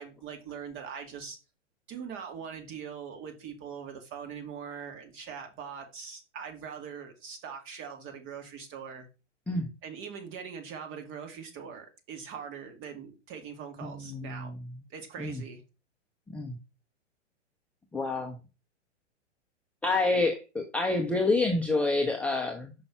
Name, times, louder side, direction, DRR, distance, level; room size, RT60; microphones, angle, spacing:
voice 1, 0.0-1.4 1.9-9.1 9.8-14.5 14.9-15.6, right 7 dB, 35° right, 2.0 m, -42 dB
voice 2, 13.8-14.6 15.2-15.4 16.3-16.6 17.9-18.4 19.8-22.7, left 3 dB, 5° left, 0.6 m, -28 dB
5.6 x 5.5 x 4.4 m
hypercardioid pair, 120°, 36 cm